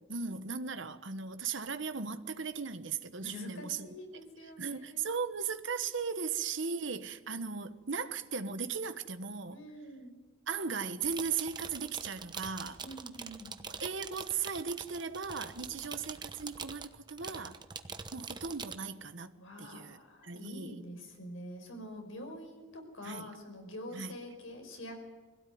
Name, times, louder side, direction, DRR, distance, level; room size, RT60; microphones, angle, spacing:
voice 1, 0.1-3.9 4.4-9.6 10.5-12.8 13.8-17.6 18.1-20.0 20.2-20.8 23.0-23.3 23.9-24.1, right 5 dB, 65° right, 1.2 m, -37 dB
voice 2, 3.2-5.1 5.7-5.8 9.5-10.1 12.8-13.6 15.6-15.8 19.4-24.9, equal, 75° left, 5.5 m, -46 dB
sound 1, 10.9-18.8, right 5 dB, 20° right, 1.0 m, -44 dB
22.0 x 16.5 x 9.5 m
head